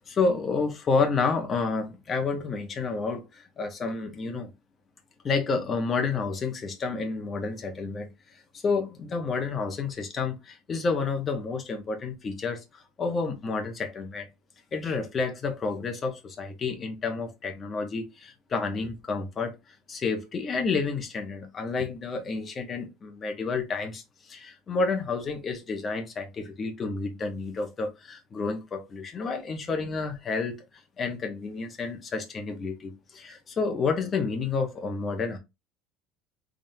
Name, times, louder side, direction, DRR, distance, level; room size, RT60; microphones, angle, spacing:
voice 1, 0.1-4.5 5.2-8.1 8.6-14.3 14.7-19.5 19.9-30.6 31.0-35.4, left 4 dB, 20° left, 1.0 m, -30 dB
3.7 x 3.4 x 2.7 m
cardioid pair, 160°, 0 cm